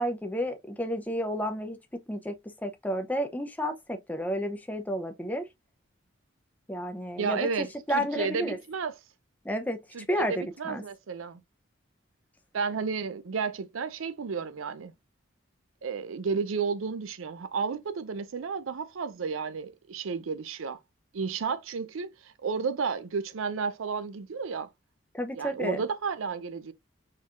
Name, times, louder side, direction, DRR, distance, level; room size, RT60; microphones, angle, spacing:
voice 1, 0.0-5.5 6.7-7.5 7.9-8.6 9.4-9.8 10.1-10.8 25.1-25.8, equal, 10° left, 0.5 m, -31 dB
voice 2, 7.2-7.7 7.9-9.0 9.9-11.4 12.5-14.9 15.8-20.8 21.1-24.7 25.4-26.7, right 5 dB, 80° right, 0.5 m, -32 dB
4.4 x 3.7 x 2.4 m
head